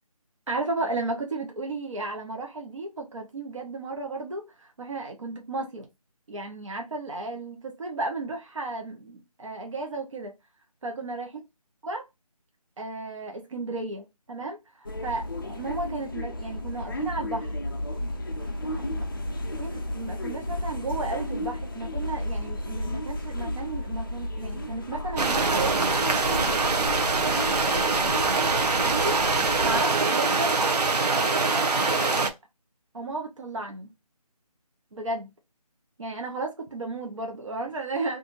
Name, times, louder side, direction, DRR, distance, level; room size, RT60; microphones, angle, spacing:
voice 1, 0.5-5.9 6.3-10.3 10.8-11.3 11.8-12.0 12.8-17.6 19.6-26.0 26.4-27.5 28.8-29.2 29.6-30.8 31.1-32.3 32.9-33.9 34.9-35.3 36.0-38.2, right 2 dB, 55° right, 0.8 m, -34 dB
sound 1, 14.8-29.8, left 1 dB, 35° left, 0.5 m, -33 dB
sound 2, 25.2-32.3, right 3 dB, 90° right, 0.7 m, -24 dB
2.6 x 2.5 x 3.8 m
figure-of-eight pair, 175°, 20 cm